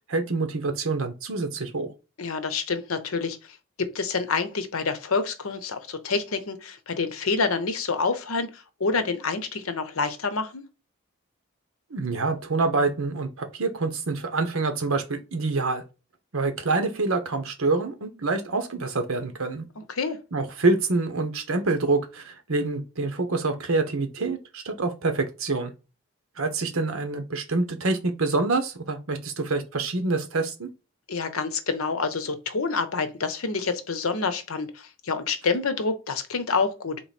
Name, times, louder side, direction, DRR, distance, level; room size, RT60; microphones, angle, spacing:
voice 1, 0.1-1.9 11.9-15.8 16.3-19.6 20.3-25.7 26.4-30.7, right 3 dB, 85° right, 1.0 m, -26 dB
voice 2, 2.2-3.4 3.8-10.6 19.8-20.2 31.1-37.0, left 4 dB, 85° left, 0.8 m, -27 dB
3.8 x 3.1 x 4.1 m
head